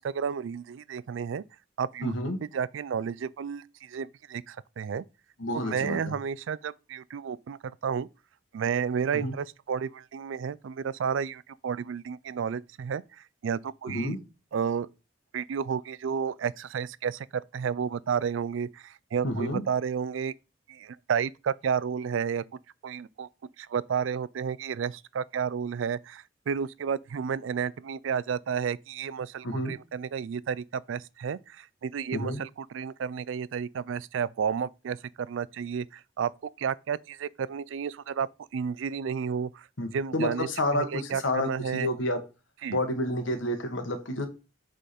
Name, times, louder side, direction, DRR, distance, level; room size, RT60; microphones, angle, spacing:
voice 1, 0.0-1.4 1.8-2.1 2.5-5.0 5.5-8.1 8.5-14.2 14.5-14.9 15.3-20.3 20.7-22.4 22.8-23.3 23.6-36.3 36.6-39.7 39.9-40.5 40.7-41.9 42.6-42.8, right 7 dB, 85° right, 0.4 m, -31 dB
voice 2, 2.0-2.4 5.4-6.1 9.1-9.3 13.9-14.2 19.2-19.6 29.4-29.8 32.1-32.4 39.8-42.2 42.7-44.3, left 1 dB, 85° left, 1.4 m, -30 dB
8.0 x 3.8 x 4.3 m
head